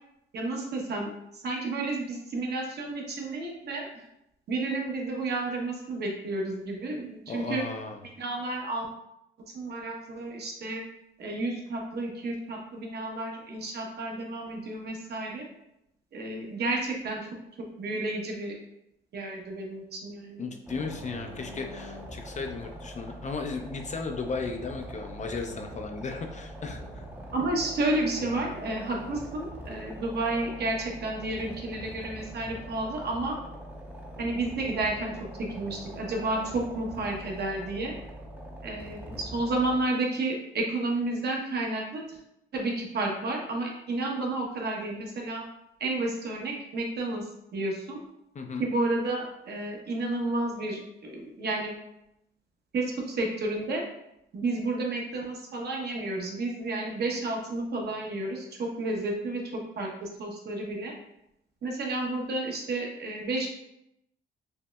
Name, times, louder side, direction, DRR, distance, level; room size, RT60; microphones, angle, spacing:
voice 1, 0.3-4.0 4.5-7.6 8.2-8.9 9.5-10.8 11.2-15.5 16.1-17.3 17.6-18.6 19.1-20.4 27.3-33.4 34.2-35.1 35.6-37.9 38.6-42.2 42.5-45.4 45.8-48.0 48.6-51.8 52.7-53.8 54.3-60.9 61.6-63.5, right 2 dB, 55° right, 0 dB, 0.9 m, -31 dB
voice 2, 7.3-8.0 20.4-27.0 48.3-48.7, left 4 dB, 35° left, 4 dB, 0.4 m, -35 dB
sound 1, 20.7-39.8, equal, 10° right, 0.6 m, -43 dB
5.4 x 2.0 x 2.2 m, 0.83 s
cardioid pair, 90°, 20 cm